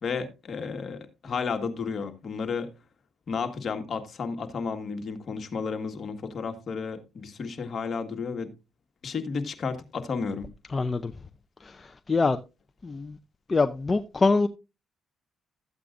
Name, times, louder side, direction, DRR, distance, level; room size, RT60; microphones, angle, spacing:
voice 1, 0.0-2.7 3.3-8.5 9.0-10.5, left 5 dB, 50° left, 1.7 m, -32 dB
voice 2, 10.7-11.1 11.6-12.4 12.8-13.2 13.5-14.5, left 3 dB, 30° left, 0.6 m, -25 dB
13.5 x 8.2 x 2.5 m
cardioid pair, 90°, 0 cm